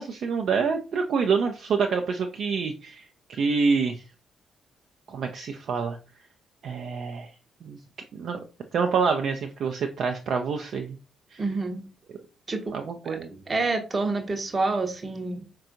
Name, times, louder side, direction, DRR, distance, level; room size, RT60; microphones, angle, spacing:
voice 1, 0.0-4.0 5.1-6.0 6.6-7.3 7.6-7.8 8.1-8.4 8.7-11.0 11.3-11.4 12.7-13.3, right 5 dB, 55° right, 0.3 m, -27 dB
voice 2, 11.4-11.9 12.5-12.7 13.0-15.5, right 3 dB, 30° right, 0.7 m, -28 dB
4.1 x 2.2 x 2.6 m
figure-of-eight pair, 40°, 0 cm